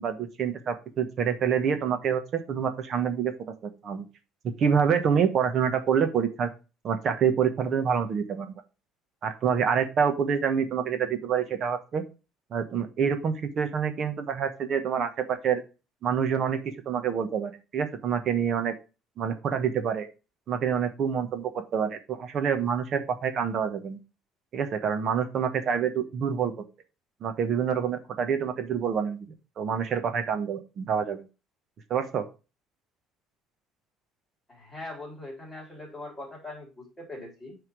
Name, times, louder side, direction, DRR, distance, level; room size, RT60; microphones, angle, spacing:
voice 1, 0.0-3.3 3.6-4.0 4.4-6.5 6.8-8.5 9.2-12.0 12.5-15.6 16.0-18.7 19.2-20.1 20.5-24.0 24.5-26.5 27.2-31.2 31.9-32.2, right 7 dB, 40° right, 8 dB, 1.1 m, -27 dB
voice 2, 34.5-37.6, left 2 dB, 5° left, -3 dB, 3.6 m, -41 dB
9.7 x 3.6 x 4.6 m, 0.31 s
cardioid pair, 160°, 0 cm